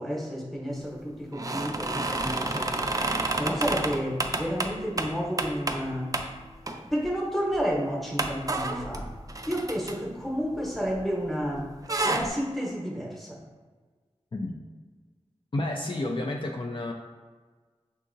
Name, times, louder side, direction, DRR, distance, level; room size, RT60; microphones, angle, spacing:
voice 1, 0.0-2.9 3.4-6.1 6.9-9.1 9.5-11.7 12.0-13.4, equal, ahead, -3 dB, 0.9 m, -31 dB
sound 1, 1.3-5.9 6.1-6.3 6.7-7.1 7.5-7.6 8.2-11.2 11.5-12.3, right 2 dB, 30° right, 0.4 m, -30 dB
voice 2, 15.5-16.9, left 2 dB, 45° left, 1 dB, 0.4 m, -30 dB
6.1 x 2.7 x 2.6 m, 1.4 s
wide cardioid pair, 50°, 12 cm